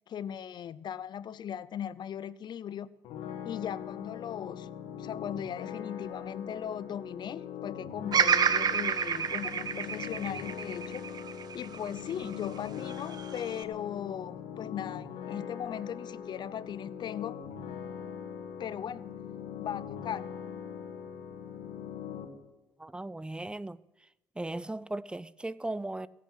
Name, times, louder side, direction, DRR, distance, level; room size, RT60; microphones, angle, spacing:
voice 1, 0.1-2.9 3.4-4.7 5.0-11.1 11.5-17.4 18.6-19.1 19.6-20.3, left 9 dB, 55° left, 0.6 m, -38 dB
sound 1, 3.0-22.3, left 8 dB, 80° left, 2.1 m, -41 dB
Bird vocalization bird call bird song, 8.1-12.3 12.9-13.6, right 7 dB, 50° right, 1.0 m, -29 dB
voice 2, 22.8-23.8 24.4-26.1, right 2 dB, 10° right, 0.5 m, -37 dB
16.5 x 8.4 x 8.0 m
supercardioid pair, 75°, 9 cm